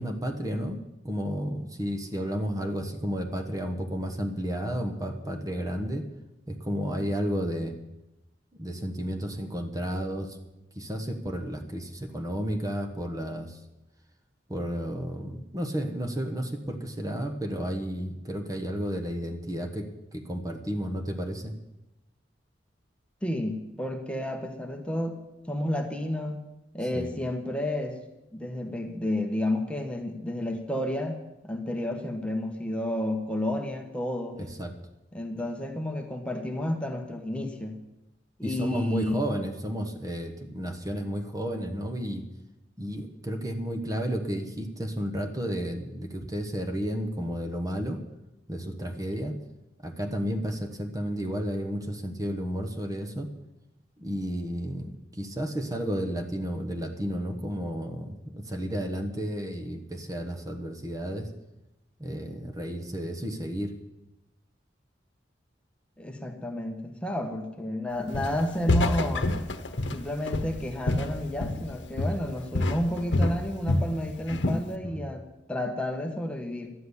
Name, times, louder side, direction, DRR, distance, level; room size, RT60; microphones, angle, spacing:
voice 1, 0.0-6.0 6.5-7.8 8.6-10.4 10.7-13.6 14.5-21.5 26.9-27.1 34.3-34.7 38.4-42.2 42.8-48.0 48.5-49.4 49.8-53.3 54.0-61.3 62.0-63.7 74.8-75.1, equal, 20° right, 6 dB, 1.2 m, -32 dB
voice 2, 23.2-26.4 26.7-28.0 28.3-31.2 31.4-34.4 35.1-37.8 38.4-39.3 66.0-69.3 69.9-75.2 75.5-76.7, left 1 dB, 5° left, 3 dB, 1.2 m, -31 dB
Walk footsteps, 68.1-68.4 68.7-71.7 72.0-72.3 72.5-73.9 74.3-74.7, left 2 dB, 80° left, 1.1 m, -27 dB
12.0 x 7.8 x 9.7 m, 0.94 s
head